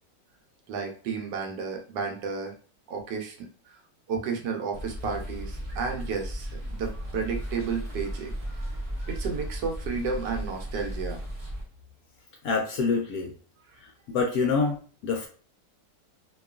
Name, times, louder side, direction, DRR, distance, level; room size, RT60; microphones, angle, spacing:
voice 1, 0.7-2.5 2.9-3.5 4.1-8.3 9.1-11.2, right 5 dB, 75° right, 2 dB, 1.2 m, -32 dB
sound 1, 4.7-11.6, equal, 40° right, 0.5 m, -35 dB
voice 2, 12.4-13.3 14.1-14.8 15.0-15.3, left 4 dB, 70° left, 0 dB, 0.9 m, -25 dB
2.9 x 2.3 x 2.3 m, 0.41 s
omnidirectional pair, 1.9 m